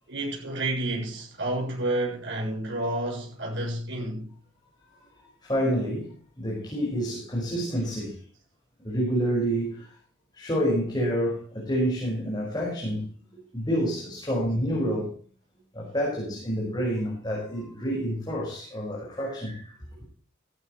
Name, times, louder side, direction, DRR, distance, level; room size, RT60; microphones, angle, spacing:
voice 1, 0.1-4.3 7.5-7.6, right 1 dB, 60° right, 7.2 m, -30 dB
voice 2, 5.4-8.2 8.8-9.9 10.3-13.1 13.5-15.1 15.7-19.7, equal, 20° left, 5.4 m, -28 dB
16.5 x 14.5 x 3.2 m
head